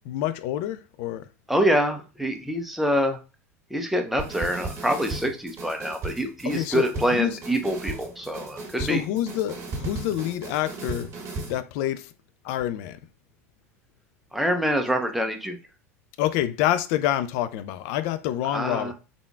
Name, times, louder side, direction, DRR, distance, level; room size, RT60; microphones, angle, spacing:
voice 1, 0.0-1.3 6.4-7.4 8.8-11.1 11.5-12.1 12.4-13.0 16.2-18.9, left 12 dB, 60° left, 0.4 m, -27 dB
voice 2, 1.5-3.2 3.7-9.0 14.3-15.6 18.5-18.9, equal, ahead, 0.7 m, -25 dB
sound 1, 4.2-11.6, right 3 dB, 35° right, 1.9 m, -36 dB
3.6 x 3.6 x 2.3 m
hypercardioid pair, 85°, 8 cm